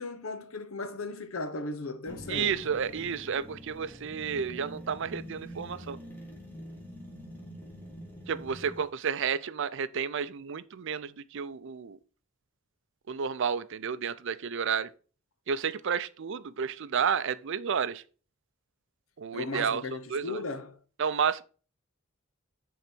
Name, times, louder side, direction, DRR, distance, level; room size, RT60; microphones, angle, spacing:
voice 1, 0.0-2.5 19.3-20.8, left 3 dB, 75° left, 0.9 m, -36 dB
sound 1, 2.1-8.8, equal, 10° left, 1.9 m, -45 dB
voice 2, 2.3-6.0 8.3-12.0 13.1-14.9 15.5-18.0 19.2-20.4 21.0-21.4, right 6 dB, 60° right, 0.5 m, -31 dB
10.0 x 3.9 x 4.5 m
head